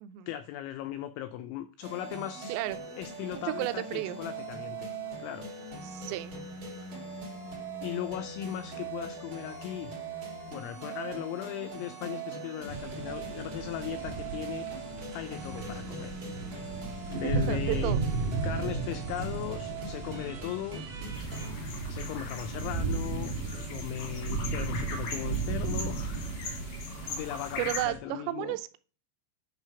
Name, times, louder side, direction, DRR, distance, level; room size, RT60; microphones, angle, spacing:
voice 1, 0.3-2.6 3.0-4.9 5.2-5.5 6.8-7.3 7.8-10.0 10.5-14.7 15.1-16.2 17.1-18.0 18.4-20.9 21.9-26.7 27.1-28.6, left 12 dB, 90° left, 9 dB, 2.6 m, -38 dB
sound 1, 1.8-21.5, right 4 dB, 35° right, 2.3 m, -41 dB
voice 2, 3.4-4.2 5.8-6.3 17.2-18.0 27.6-28.8, right 16 dB, 85° right, 11 dB, 3.1 m, -33 dB
sound 2, 12.7-28.0, right 4 dB, 55° right, 3.2 m, -35 dB
sound 3, 21.1-27.8, left 4 dB, 70° left, 2.0 m, -41 dB
10.0 x 3.4 x 5.7 m, 0.38 s
omnidirectional pair, 5.9 m